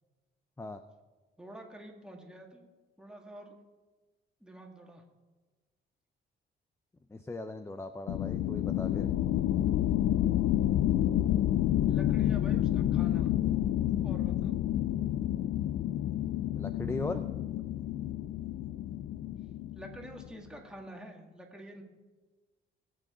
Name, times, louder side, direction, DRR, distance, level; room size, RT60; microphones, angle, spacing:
voice 1, 1.4-2.7 3.0-3.6 4.4-5.0 11.9-13.3 14.0-14.5 19.7-21.8, right 1 dB, 5° right, 1 dB, 2.1 m, -48 dB
voice 2, 7.1-9.1 16.5-17.2, left 2 dB, 15° left, 9 dB, 0.6 m, -38 dB
sound 1, 8.1-20.3, left 12 dB, 65° left, 0.4 m, -29 dB
20.0 x 7.8 x 3.8 m, 1.3 s
cardioid pair, 90°, 20 cm